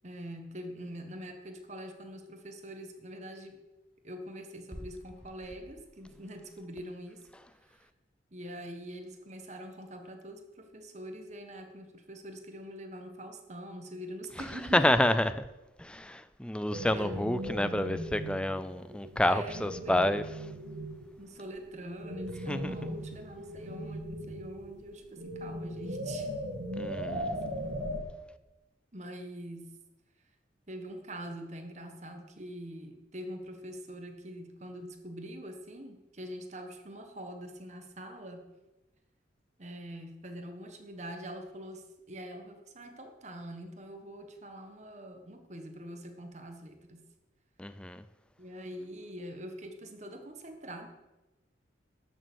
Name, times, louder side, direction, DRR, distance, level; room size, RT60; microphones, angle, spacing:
voice 1, 0.0-3.6 4.0-7.3 7.6-7.9 8.3-14.9 16.9-17.3 19.2-20.2 21.2-26.3 27.1-27.8 28.9-29.8 30.7-38.4 39.6-47.1 48.4-50.9, equal, 40° right, 1.4 m, -44 dB
voice 2, 14.7-15.3 15.8-20.2 22.5-22.9 26.7-27.3 47.6-48.0, left 1 dB, 5° left, 0.4 m, -29 dB
sound 1, 16.7-21.1 21.4-28.0, equal, 75° right, 2.2 m, -38 dB
12.5 x 6.9 x 6.3 m
head